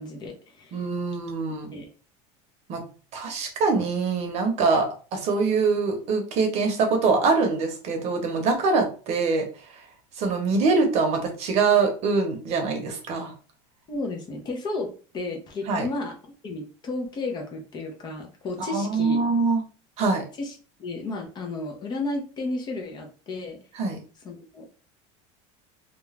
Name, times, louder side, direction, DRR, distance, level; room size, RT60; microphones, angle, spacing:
voice 1, 0.0-0.9 1.7-1.9 13.9-14.9 15.1-16.1 16.4-19.2 20.4-20.5 20.8-23.6 24.2-24.6, left 2 dB, 25° left, 2 dB, 0.6 m, -33 dB
voice 2, 0.7-1.8 2.7-2.8 3.1-9.5 10.2-13.3 15.7-15.9 18.7-19.6 20.0-20.2 23.7-24.0, right 4 dB, 45° right, 3 dB, 0.8 m, -24 dB
2.4 x 2.2 x 3.1 m, 0.37 s
supercardioid pair, 145°, 16 cm